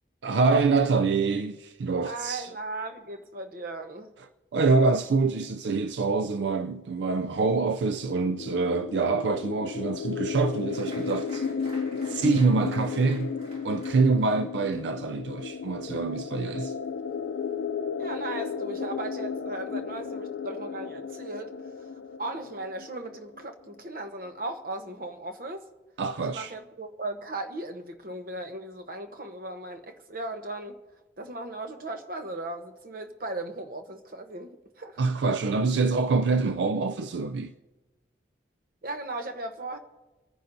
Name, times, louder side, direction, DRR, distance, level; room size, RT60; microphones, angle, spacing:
voice 1, 0.2-2.5 4.5-11.5 12.0-13.3 13.6-16.7 26.0-26.5 35.0-37.5, right 4 dB, 80° right, 0.4 m, -25 dB
voice 2, 2.0-4.1 18.0-21.9 22.2-25.6 26.2-30.8 31.2-35.0 38.8-39.8, right 2 dB, 55° right, 1.0 m, -37 dB
sound 1, 7.9-23.5, left 6 dB, 80° left, 0.4 m, -34 dB
Applause, 10.7-17.8 18.0-18.8 19.2-19.3 19.6-20.0, equal, 35° right, 2.5 m, -52 dB
28.0 x 10.0 x 2.7 m
head